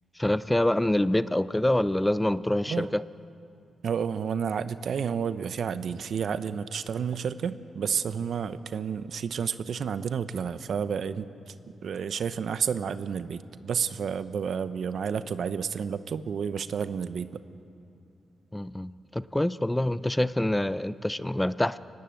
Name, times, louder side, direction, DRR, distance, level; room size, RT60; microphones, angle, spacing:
voice 1, 0.2-3.0 18.5-21.8, left 1 dB, 10° left, 16 dB, 0.6 m, -26 dB
voice 2, 3.8-11.5 11.8-17.4, right 7 dB, 70° right, 12 dB, 0.9 m, -30 dB
25.5 x 19.0 x 7.9 m, 2.6 s
cardioid pair, 65°, 0 cm